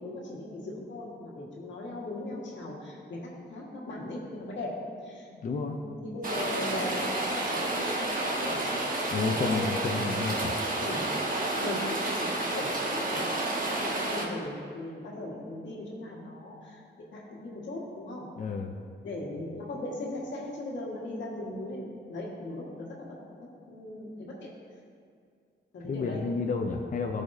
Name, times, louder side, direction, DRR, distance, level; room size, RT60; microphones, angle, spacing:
voice 1, 0.0-4.7 5.0-5.3 5.6-8.0 8.4-8.8 9.2-10.1 10.8-11.1 11.6-13.3 13.7-16.8 17.1-18.2 19.0-23.1 23.7-24.5 25.7-26.2, left 1 dB, 90° left, -3 dB, 1.7 m, -38 dB
voice 2, 5.3-5.8 9.1-10.5 18.4-18.7 25.8-27.2, left 4 dB, 45° left, 3 dB, 0.5 m, -31 dB
Rain, 6.2-14.2, right 2 dB, 50° right, 1.3 m, -30 dB
15.0 x 5.1 x 2.7 m, 2.3 s
cardioid pair, 90°, 18 cm